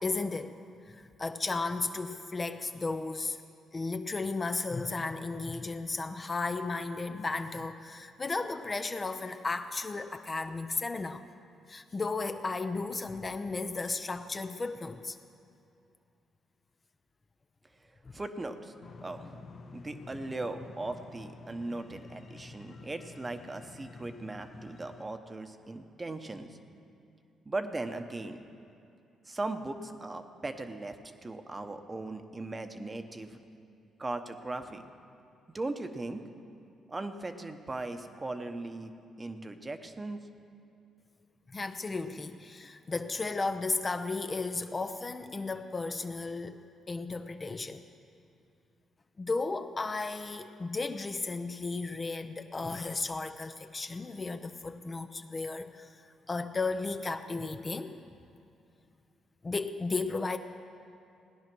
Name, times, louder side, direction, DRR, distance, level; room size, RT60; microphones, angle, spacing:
voice 1, 0.0-0.6 0.9-3.4 3.7-11.2 11.7-15.2 41.5-46.6 46.9-47.8 49.2-58.0 59.4-60.4, left 3 dB, 30° left, 8 dB, 0.5 m, -34 dB
voice 2, 17.8-18.7 19.0-26.6 27.4-28.4 29.2-33.4 34.0-34.8 35.5-36.2 36.9-38.9 39.2-40.2, right 2 dB, 25° right, 7 dB, 0.9 m, -38 dB
sound 1, 18.8-25.0, left 3 dB, 50° left, 0.9 m, -49 dB
17.0 x 10.0 x 6.1 m, 2.6 s
cardioid pair, 90°, 0 cm